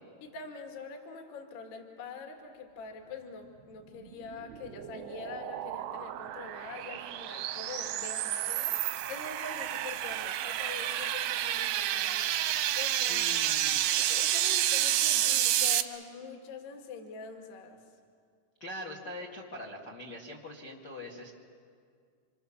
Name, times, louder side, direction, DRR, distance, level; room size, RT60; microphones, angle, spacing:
voice 1, 0.2-8.7 9.1-12.3 12.7-13.2 13.9-17.8, left 5 dB, 60° left, 3 dB, 3.7 m, -44 dB
sound 1, 4.1-15.8, right 12 dB, 80° right, 2.4 m, -30 dB
voice 2, 13.0-13.8 18.6-21.3, left 1 dB, 80° left, -2 dB, 0.9 m, -42 dB
29.5 x 26.0 x 7.2 m, 2.2 s
omnidirectional pair, 5.7 m